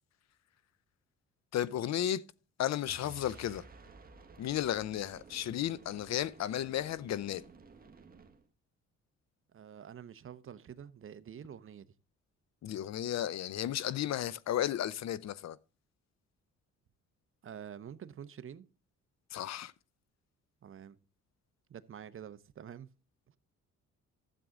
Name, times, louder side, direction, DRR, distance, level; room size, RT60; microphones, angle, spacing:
voice 1, 1.5-2.2 2.6-3.6 4.4-7.4 12.6-15.6 19.3-19.7, left 11 dB, 60° left, 0.7 m, -34 dB
sound 1, 2.8-8.4, right 4 dB, 30° right, 1.5 m, -55 dB
voice 2, 9.5-11.9 17.4-18.7 20.6-21.0 21.7-22.9, right 8 dB, 45° right, 0.8 m, -47 dB
12.5 x 7.6 x 3.7 m
cardioid pair, 90°, 30 cm